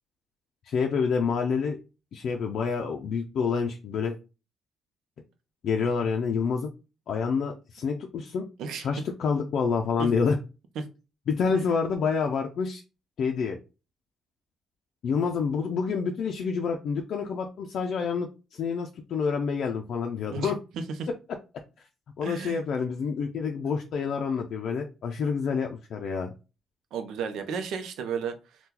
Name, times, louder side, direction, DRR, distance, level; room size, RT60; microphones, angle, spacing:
voice 1, 0.7-1.8 2.1-4.2 5.6-6.7 7.1-8.5 8.8-10.4 11.3-12.8 13.2-13.6 15.0-20.6 22.2-26.3, left 5 dB, 65° left, 0.4 m, -28 dB
voice 2, 20.3-21.1 22.2-22.6 26.9-28.6, right 5 dB, 80° right, 0.6 m, -33 dB
2.8 x 2.2 x 3.7 m
cardioid pair, 90°, 0 cm